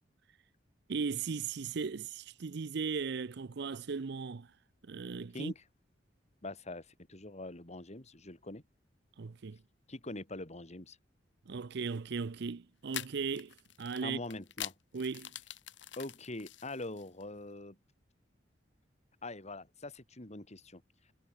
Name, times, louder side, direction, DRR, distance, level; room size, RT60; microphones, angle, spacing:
voice 1, 0.9-4.5 4.9-5.5 9.2-9.6 11.5-14.2 14.9-15.3, right 5 dB, 65° right, 0.6 m, -37 dB
voice 2, 6.4-8.6 9.9-11.0 14.0-14.7 16.0-17.8 19.2-20.8, left 2 dB, 40° left, 2.7 m, -43 dB
sound 1, 11.8-12.0 12.9-17.2, left 11 dB, 80° left, 6.0 m, -45 dB
head